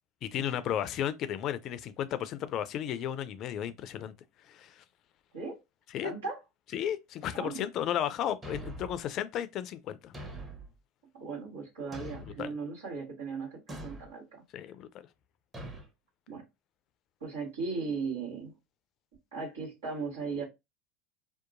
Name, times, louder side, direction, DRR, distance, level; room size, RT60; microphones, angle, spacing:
voice 1, 0.2-4.1 4.4-4.8 5.9-6.1 6.7-10.1 12.4-12.5 14.5-15.1, left 10 dB, 50° left, 0.4 m, -34 dB
voice 2, 6.0-6.4 7.3-7.6 11.1-14.4 16.3-16.4 17.2-18.5 19.3-20.4, right 4 dB, 85° right, 1.4 m, -37 dB
Thump thud, 8.4-9.0 10.1-10.7 11.9-12.5 13.7-14.1 15.5-15.9, right 1 dB, 20° right, 0.8 m, -43 dB
2.8 x 2.2 x 2.5 m
hypercardioid pair, 85°, 0 cm